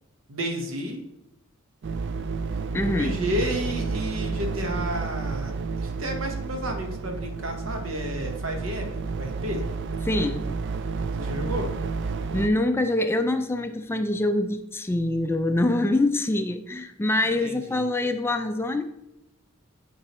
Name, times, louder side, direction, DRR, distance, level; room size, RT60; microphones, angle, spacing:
voice 1, 0.3-1.0 2.8-9.6 11.2-11.7 17.4-17.8, equal, 75° right, 4 dB, 1.1 m, -32 dB
sound 1, 1.8-12.5, right 4 dB, 60° right, 0.4 m, -30 dB
voice 2, 2.7-3.1 10.1-10.5 12.3-18.8, left 2 dB, 10° left, 8 dB, 0.3 m, -25 dB
8.5 x 4.5 x 3.0 m, 0.85 s
head